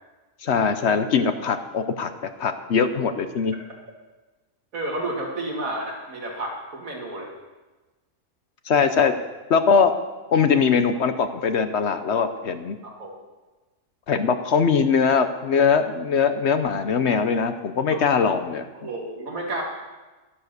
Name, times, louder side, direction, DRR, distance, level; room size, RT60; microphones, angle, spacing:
voice 1, 0.4-3.5 8.6-9.1 9.5-9.9 10.3-12.8 14.1-18.7, left 6 dB, 60° left, 9 dB, 1.0 m, -21 dB
voice 2, 4.7-7.3 12.8-13.1 17.9-18.0 18.7-19.6, right 2 dB, 85° right, 0 dB, 2.2 m, -31 dB
11.5 x 10.0 x 6.5 m, 1.2 s
omnidirectional pair, 1.4 m